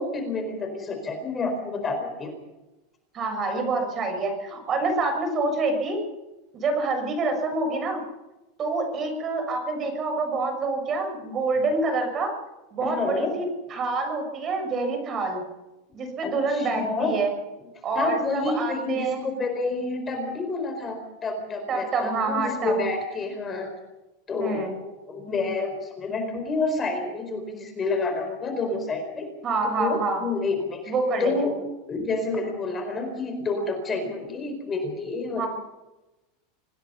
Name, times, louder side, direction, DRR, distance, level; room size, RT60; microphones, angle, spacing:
voice 1, 0.0-2.3 12.8-13.3 16.2-17.1 17.9-23.7 24.3-29.3 29.7-30.9 31.2-31.5 31.9-35.5, left 3 dB, 20° left, 5 dB, 4.6 m, -29 dB
voice 2, 3.1-6.0 6.5-8.0 8.6-12.3 12.7-15.4 15.9-17.3 17.8-19.3 21.7-22.8 24.4-24.8 29.4-30.2 30.9-31.5 35.4-35.5, right 3 dB, 25° right, 5 dB, 6.2 m, -27 dB
26.5 x 19.0 x 5.7 m, 1.0 s
supercardioid pair, 155°, 0 cm